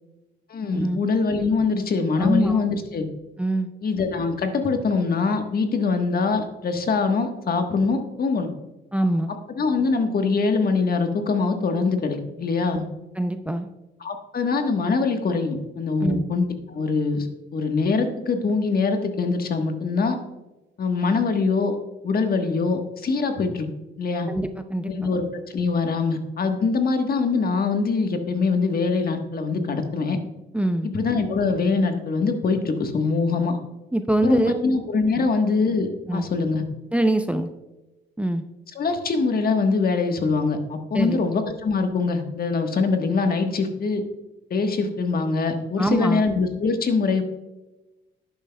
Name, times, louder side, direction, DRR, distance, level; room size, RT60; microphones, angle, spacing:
voice 1, 0.5-3.1 3.8-8.5 9.6-12.8 14.0-17.3 17.5-20.2 20.8-21.8 22.0-23.7 24.0-24.3 24.9-30.2 30.8-33.6 34.2-36.6 38.7-44.0 44.5-47.2, left 4 dB, 50° left, 5 dB, 1.3 m, -23 dB
voice 2, 2.2-2.6 3.4-3.7 8.9-9.3 12.7-12.8 13.2-13.7 16.0-16.2 24.3-25.1 30.5-30.9 33.9-34.6 35.2-35.3 36.1-36.3 36.9-37.5 38.2-38.4 40.9-41.2 45.8-46.2, right 1 dB, 5° right, 8 dB, 0.6 m, -24 dB
11.0 x 9.0 x 2.3 m, 1.0 s
cardioid pair, 90°, 20 cm